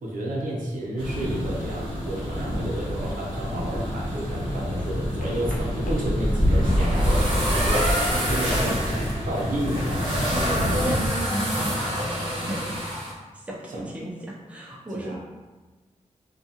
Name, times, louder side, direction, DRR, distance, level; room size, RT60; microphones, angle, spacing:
voice 1, 0.0-10.3 13.7-13.8 14.9-15.2, right 1 dB, 85° right, -4 dB, 0.7 m, -31 dB
sound 1, 1.0-11.1, equal, 30° left, 1.3 m, -27 dB
sound 2, 5.1-11.0, left 1 dB, 90° left, 0.5 m, -43 dB
sound 3, 6.3-13.1, equal, 40° right, 1.0 m, -28 dB
voice 2, 10.3-12.7 13.3-15.2, right 1 dB, 10° right, -4 dB, 0.5 m, -34 dB
2.6 x 2.3 x 2.7 m, 1.2 s
wide cardioid pair, 125°, 13 cm